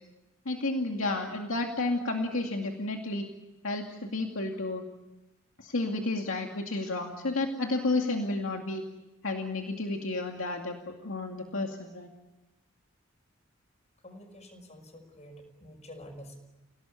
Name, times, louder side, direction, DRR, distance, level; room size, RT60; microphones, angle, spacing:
voice 1, 0.5-3.2 3.6-4.8 5.6-8.8 9.2-12.1, left 2 dB, 80° left, 2 dB, 2.4 m, -31 dB
voice 2, 14.0-16.4, equal, 35° left, 5 dB, 5.6 m, -48 dB
29.5 x 17.5 x 9.7 m, 1.1 s
head